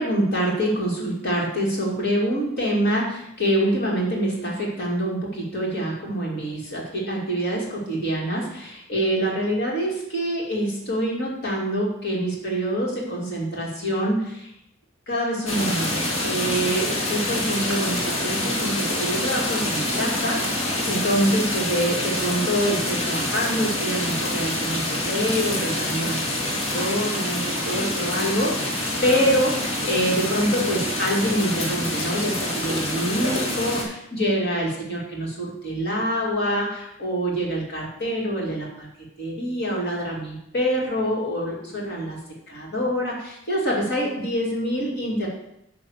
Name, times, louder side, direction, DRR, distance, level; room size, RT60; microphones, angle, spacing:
voice 1, 0.0-14.5 15.1-38.9 39.2-42.2 42.5-45.3, equal, 50° left, -3 dB, 2.5 m, -26 dB
sound 1, 15.5-33.8, left 1 dB, 75° left, 2.1 m, -26 dB
10.0 x 3.5 x 6.4 m, 0.82 s
head